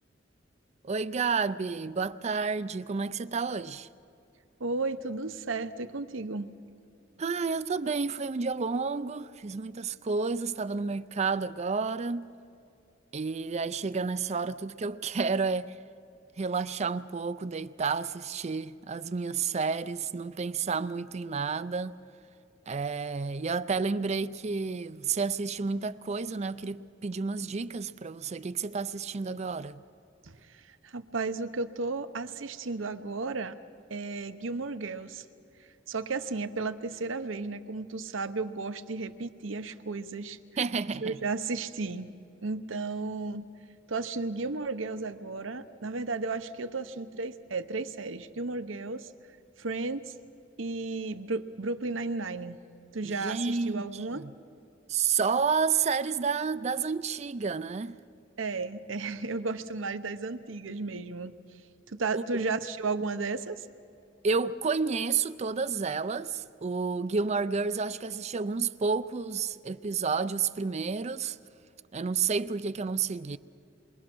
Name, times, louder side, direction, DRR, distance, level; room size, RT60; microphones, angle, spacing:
voice 1, 0.8-3.9 7.2-12.3 13.1-15.8 16.4-22.0 22.7-29.8 40.6-41.2 53.0-54.3 54.9-57.9 62.1-62.4 64.2-71.4 71.9-73.4, right 5 dB, 35° right, 0.4 m, -30 dB
voice 2, 4.6-6.5 30.2-33.6 33.9-35.2 35.9-40.4 41.0-42.1 42.4-43.5 43.9-49.1 49.6-50.1 50.6-52.6 52.9-54.2 58.4-61.3 61.9-63.7, right 3 dB, 80° right, 0.9 m, -34 dB
27.5 x 23.0 x 6.2 m
head